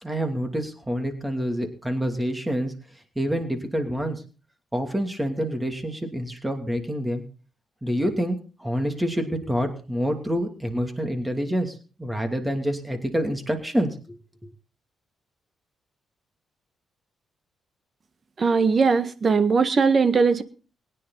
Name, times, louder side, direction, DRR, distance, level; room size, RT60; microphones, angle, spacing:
voice 1, 0.0-2.7 3.2-4.2 4.7-7.2 7.8-14.2, equal, 10° right, 5 dB, 2.7 m, -27 dB
voice 2, 18.4-20.4, right 5 dB, 40° right, 11 dB, 1.6 m, -20 dB
23.0 x 10.0 x 4.1 m, 0.38 s
cardioid pair, 100°, 0 cm